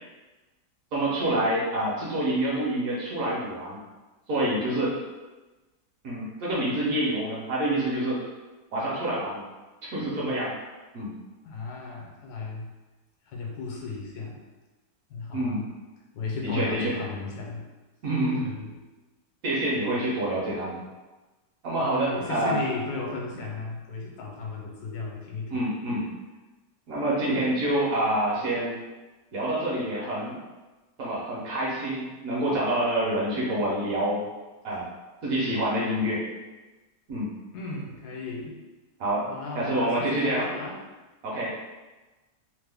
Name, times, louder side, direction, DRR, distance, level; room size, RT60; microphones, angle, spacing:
voice 1, 0.9-3.8 4.3-5.0 6.0-8.2 8.7-9.4 9.8-10.5 10.9-11.1 15.3-15.6 16.5-16.9 18.0-18.4 19.4-20.8 21.6-22.6 25.5-26.1 26.9-28.8 29.3-30.4 31.0-34.2 34.6-34.9 35.2-36.3 37.1-37.3 39.0-39.3 39.5-40.5 41.2-41.7, right 1 dB, 60° right, -5 dB, 1.0 m, -27 dB
voice 2, 11.4-12.7 13.3-14.4 15.1-15.7 16.1-17.6 18.4-18.8 21.8-25.6 37.5-38.6 39.3-40.8, left 3 dB, 70° left, -2 dB, 1.2 m, -35 dB
3.0 x 2.1 x 3.3 m, 1.2 s
omnidirectional pair, 1.8 m